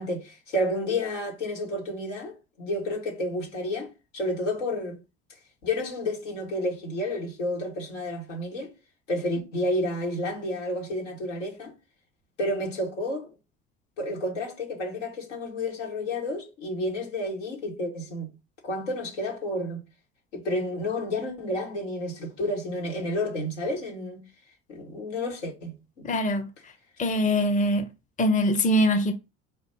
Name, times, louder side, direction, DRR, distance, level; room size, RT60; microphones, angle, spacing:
voice 1, 0.0-5.0 5.6-8.7 9.1-11.7 12.4-13.3 14.0-18.3 18.6-19.8 20.3-24.2 24.7-25.8, left 1 dB, 85° left, 1.7 m, -30 dB
voice 2, 26.0-26.5 27.0-27.9 28.2-29.1, left 1 dB, 20° left, 0.7 m, -23 dB
4.1 x 2.5 x 4.4 m
hypercardioid pair, 70°, 36 cm